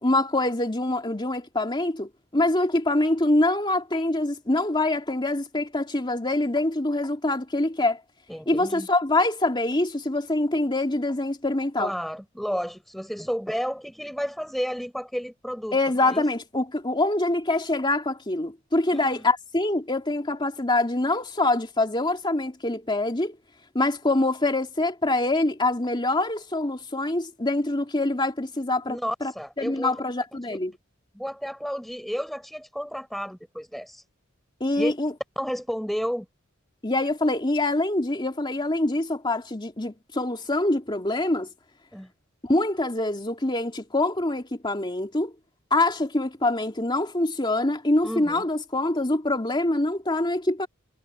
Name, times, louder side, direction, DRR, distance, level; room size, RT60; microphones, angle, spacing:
voice 1, 0.0-8.0 8.5-11.9 15.7-23.4 23.7-29.3 29.6-30.7 34.6-35.1 36.8-41.5 42.4-45.3 45.7-50.7, left 2 dB, 25° left, 2.6 m, -25 dB
voice 2, 8.3-8.9 11.8-16.2 18.9-19.2 28.9-30.0 30.5-30.6 31.1-34.0 34.8-34.9 35.4-36.3 41.9-42.1 48.0-48.4, equal, ahead, 4.6 m, -32 dB
head